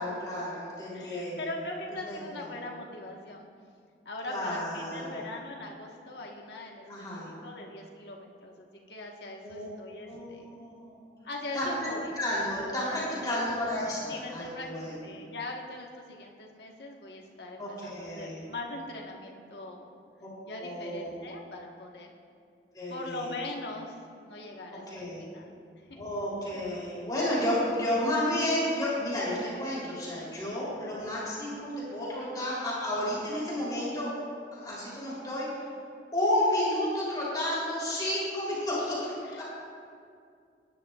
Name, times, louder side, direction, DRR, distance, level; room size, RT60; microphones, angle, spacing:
voice 1, 0.0-1.4 2.1-2.5 4.3-5.2 6.9-7.3 9.4-9.7 10.1-11.0 11.5-11.9 12.2-15.0 17.6-18.4 20.2-20.3 20.6-21.1 22.7-23.3 24.7-25.2 26.0-34.1 34.5-35.6 36.1-39.4, left 1 dB, 25° left, -7 dB, 3.4 m, -31 dB
voice 2, 0.9-3.5 4.0-10.5 11.2-12.1 13.2-13.5 14.1-19.9 20.5-22.1 22.9-24.0 24.2-26.1 39.2-39.4, left 2 dB, 70° left, 0 dB, 1.4 m, -41 dB
20.5 x 10.5 x 2.4 m, 2.3 s
head